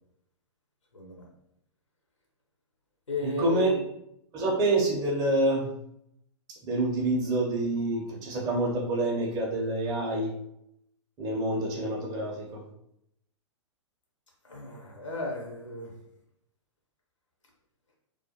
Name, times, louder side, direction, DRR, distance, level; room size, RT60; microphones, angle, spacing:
voice 1, 0.9-1.3 3.1-3.8 14.4-15.9, left 1 dB, 85° left, -1 dB, 0.7 m, -35 dB
voice 2, 3.2-3.7 4.3-5.6 6.6-10.3 11.2-12.6, right 2 dB, 25° right, -3 dB, 0.6 m, -27 dB
2.3 x 2.1 x 2.7 m, 0.77 s
figure-of-eight pair, 105°, 16 cm